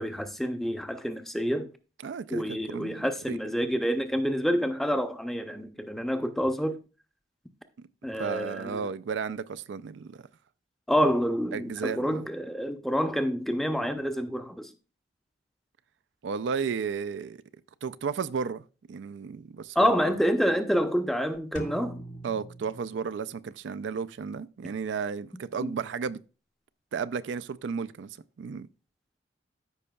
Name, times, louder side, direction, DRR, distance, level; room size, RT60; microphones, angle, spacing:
voice 1, 0.0-1.7 2.3-6.8 8.0-8.9 10.9-14.7 19.8-22.0 25.6-25.7, equal, ahead, 0.6 m, -28 dB
voice 2, 2.0-3.4 8.2-10.2 11.5-12.2 16.2-17.4 17.8-18.6 18.9-19.9 22.2-26.2 26.9-28.1 28.4-28.7, right 6 dB, 80° right, 0.4 m, -33 dB
sound 1, 21.6-23.5, equal, 45° left, 1.0 m, -41 dB
13.5 x 5.4 x 2.3 m
head